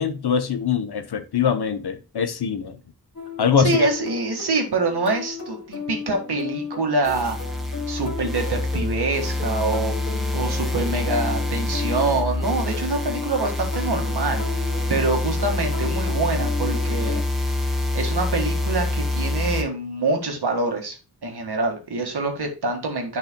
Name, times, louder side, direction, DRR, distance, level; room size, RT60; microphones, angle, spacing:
voice 1, 0.0-2.8 3.4-3.8 7.8-7.9, left 7 dB, 85° left, 0.9 m, -23 dB
sound 1, 3.2-17.2, left 5 dB, 50° left, 2.8 m, -35 dB
voice 2, 3.6-7.4 7.9-10.0 10.3-14.5 14.9-17.2 17.9-21.0 21.2-23.2, right 3 dB, 90° right, 1.8 m, -25 dB
sound 2, 7.0-19.6, left 2 dB, ahead, 1.8 m, -26 dB
10.5 x 5.5 x 2.2 m
wide cardioid pair, 80°, 38 cm